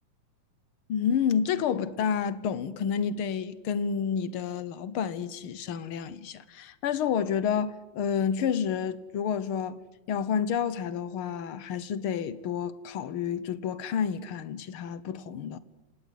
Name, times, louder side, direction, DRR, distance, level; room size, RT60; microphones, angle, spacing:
voice 1, 0.9-9.8 10.1-15.6, left 7 dB, 65° left, 1.4 m, -29 dB
28.5 x 18.5 x 8.2 m
omnidirectional pair, 3.5 m